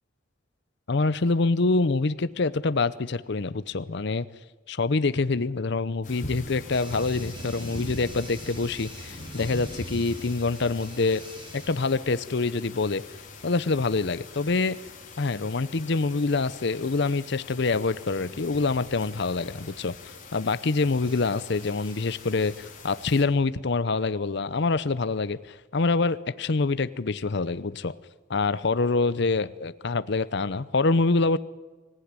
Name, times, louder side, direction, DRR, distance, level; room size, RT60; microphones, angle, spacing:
voice 1, 0.9-4.3 4.7-11.2 11.5-13.0 13.4-14.8 15.2-27.9 28.3-31.4, left 3 dB, 60° left, 15 dB, 0.7 m, -26 dB
sound 1, 6.0-23.2, left 2 dB, 40° left, 4.4 m, -42 dB
sound 2, 6.7-12.0 15.5-15.8 21.0-22.7, right 2 dB, 25° right, 4.2 m, -49 dB
24.5 x 15.5 x 9.7 m, 1.3 s
head